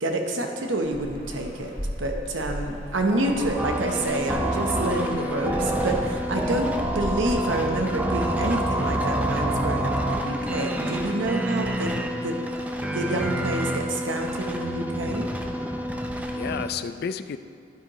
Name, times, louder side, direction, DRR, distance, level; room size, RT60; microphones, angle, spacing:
voice 1, 0.0-11.9 12.2-12.4 12.9-15.2, right 1 dB, 85° right, 3 dB, 1.0 m, -28 dB
sound 1, 0.8-7.4, equal, 30° right, 1.5 m, -36 dB
sound 2, 3.6-16.7, right 1 dB, 10° right, 0.6 m, -28 dB
voice 2, 5.0-5.5 6.4-6.7 16.2-17.4, left 6 dB, 55° left, 12 dB, 0.4 m, -33 dB
11.5 x 9.4 x 3.1 m, 2.2 s
head